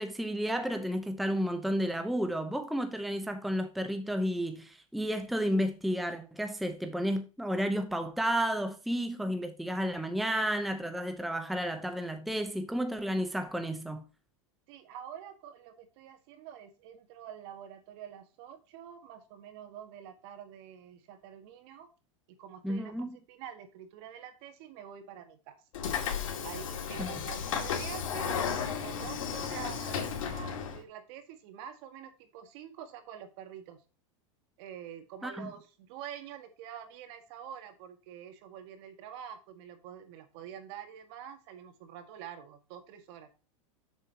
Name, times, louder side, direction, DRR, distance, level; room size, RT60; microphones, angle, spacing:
voice 1, 0.0-14.0 22.6-23.2 27.0-27.1 35.2-35.5, equal, ahead, 0.7 m, -32 dB
voice 2, 14.7-21.9 22.3-22.9 23.3-25.6 26.4-33.8 34.6-43.3, right 9 dB, 55° right, 1.7 m, -46 dB
Train / Sliding door, 25.7-30.8, left 7 dB, 85° left, 2.2 m, -34 dB
7.4 x 7.2 x 2.9 m
supercardioid pair, 135°, 17 cm